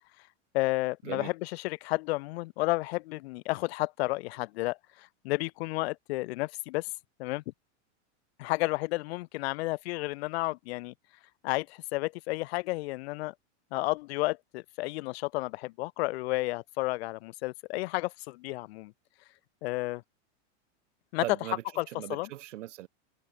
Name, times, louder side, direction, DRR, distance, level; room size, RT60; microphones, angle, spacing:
voice 1, 0.5-6.9 7.2-7.4 8.4-10.9 11.4-13.3 13.7-18.9 19.6-20.0 21.1-21.2 21.8-22.3, left 21 dB, 60° left, 0.9 m, -32 dB
voice 2, 21.2-22.9, right 14 dB, 80° right, 1.7 m, -39 dB
supercardioid pair, 145°, 36 cm